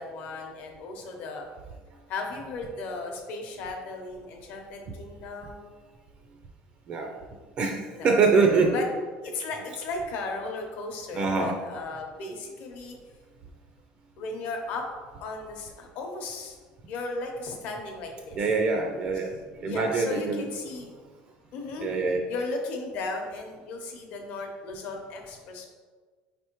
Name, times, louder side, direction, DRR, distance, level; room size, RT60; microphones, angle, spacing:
voice 1, 0.0-1.5 2.1-5.7 7.9-8.1 8.7-8.8 9.2-13.0 14.2-14.9 15.2-16.6 16.9-18.4 19.6-20.9 21.5-21.9 22.3-25.7, left 3 dB, 55° left, 2 dB, 0.7 m, -36 dB
voice 2, 7.6-8.8 11.1-11.6 18.3-20.4 21.8-22.2, right 4 dB, 35° right, 3 dB, 0.4 m, -24 dB
5.0 x 3.4 x 2.9 m, 1.5 s
cardioid pair, 165°, 3 cm